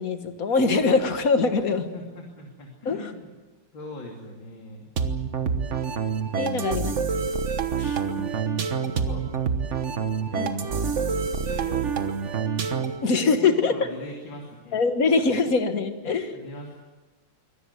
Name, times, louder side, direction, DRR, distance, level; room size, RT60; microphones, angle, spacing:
voice 1, 0.0-1.9 2.9-3.1 6.4-6.9 7.8-8.0 10.4-10.5 13.0-13.7 14.7-16.4, left 4 dB, 45° left, 8 dB, 1.9 m, -23 dB
voice 2, 1.6-3.3 3.7-4.9 6.2-6.9 8.0-9.2 10.2-11.9 13.2-14.8 16.3-16.8, left 2 dB, 70° left, 0 dB, 3.5 m, -42 dB
sound 1, 5.0-13.1, right 6 dB, 40° right, 1.4 m, -27 dB
24.0 x 18.0 x 8.1 m, 1.2 s
omnidirectional pair, 2.2 m